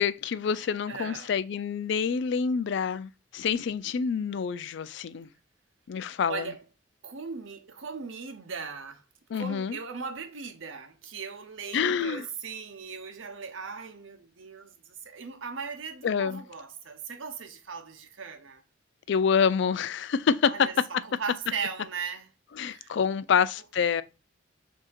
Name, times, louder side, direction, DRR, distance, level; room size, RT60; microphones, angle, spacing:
voice 1, 0.0-5.3 5.9-6.5 9.3-9.8 11.7-12.3 16.0-16.4 19.1-20.7 22.6-24.0, left 6 dB, 60° left, 0.3 m, -27 dB
voice 2, 0.9-1.3 6.3-6.6 7.0-9.0 9.3-18.6 20.4-22.3 22.6-22.9, right 5 dB, 75° right, 0.8 m, -38 dB
6.2 x 2.8 x 2.4 m
head